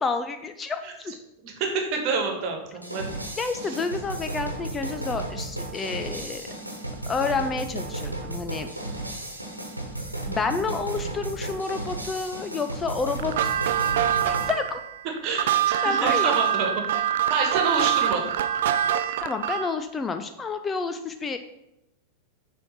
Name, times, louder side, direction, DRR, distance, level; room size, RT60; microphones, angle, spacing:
voice 1, 0.0-1.1 3.4-6.4 7.1-8.7 10.3-13.6 14.2-14.8 15.8-16.3 19.2-21.4, left 4 dB, 20° left, 8 dB, 0.4 m, -29 dB
voice 2, 1.4-3.1 3.6-3.7 15.2-18.4, right 4 dB, 40° right, 2 dB, 1.5 m, -28 dB
sound 1, 2.8-14.5, right 2 dB, 85° right, 1.2 m, -34 dB
sound 2, 13.2-19.8, right 10 dB, 55° right, 0.3 m, -25 dB
6.8 x 3.4 x 5.6 m, 0.85 s
figure-of-eight pair, 90°, 0 cm